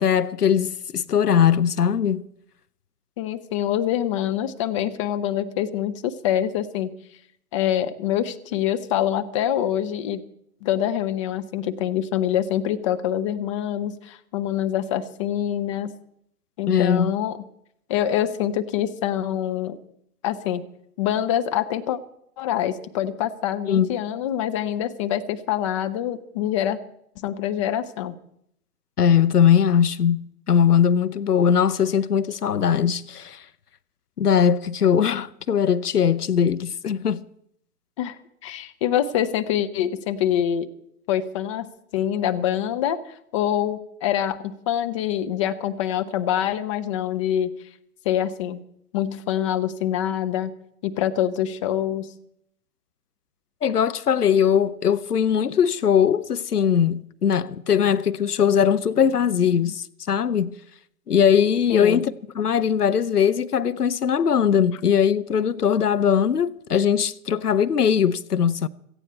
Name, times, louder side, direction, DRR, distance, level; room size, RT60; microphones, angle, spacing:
voice 1, 0.0-2.2 16.7-17.1 23.7-23.9 29.0-33.4 34.2-37.2 53.6-60.5 61.1-68.7, left 8 dB, 85° left, 0.8 m, -20 dB
voice 2, 3.2-6.9 7.5-10.2 10.6-15.9 16.6-17.4 17.9-19.8 20.2-20.6 21.0-22.0 22.4-26.8 27.2-28.1 38.0-38.2 38.4-40.7 41.1-43.0 43.3-47.5 48.0-48.6 48.9-50.5 50.8-52.1 61.7-62.0, left 10 dB, 20° left, 0.6 m, -25 dB
17.0 x 14.5 x 4.5 m
figure-of-eight pair, 125°, 45 cm